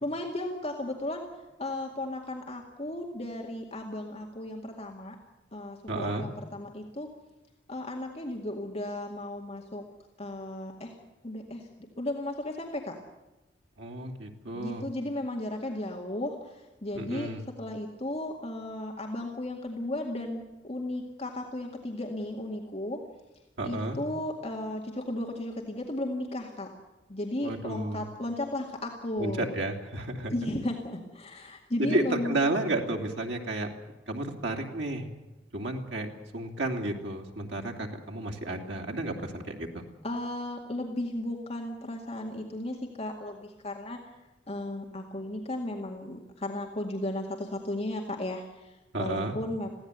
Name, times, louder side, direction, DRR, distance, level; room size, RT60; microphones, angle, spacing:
voice 1, 0.0-5.2 5.5-7.1 7.7-9.9 10.2-10.9 11.2-11.7 12.0-13.0 14.5-23.0 23.6-26.7 27.1-29.5 30.3-32.4 40.0-44.2 44.5-49.7, left 1 dB, 35° left, 1 dB, 2.1 m, -35 dB
voice 2, 5.9-6.3 13.8-14.9 16.9-17.4 23.6-24.0 27.4-28.0 29.2-30.3 31.8-33.7 34.1-35.1 35.5-39.8 48.9-49.4, right 2 dB, 85° right, 2 dB, 2.8 m, -32 dB
22.5 x 16.5 x 8.2 m, 1.0 s
head